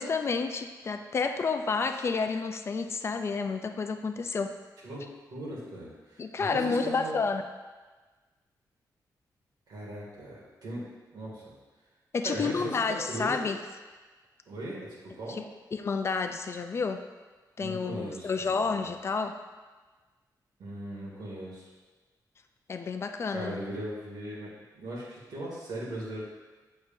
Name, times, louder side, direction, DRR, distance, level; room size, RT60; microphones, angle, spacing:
voice 1, 0.0-4.6 6.2-7.4 12.1-13.6 15.3-15.4 15.7-17.0 17.6-19.4 22.7-23.6, left 4 dB, 40° left, 7 dB, 0.4 m, -30 dB
voice 2, 4.8-7.2 9.7-11.5 12.2-12.8 13.1-13.4 14.5-15.4 17.6-18.8 20.6-21.7 23.3-26.2, right 1 dB, 75° right, -5 dB, 2.1 m, -39 dB
7.2 x 6.4 x 2.6 m, 1.3 s
wide cardioid pair, 155°, 7 cm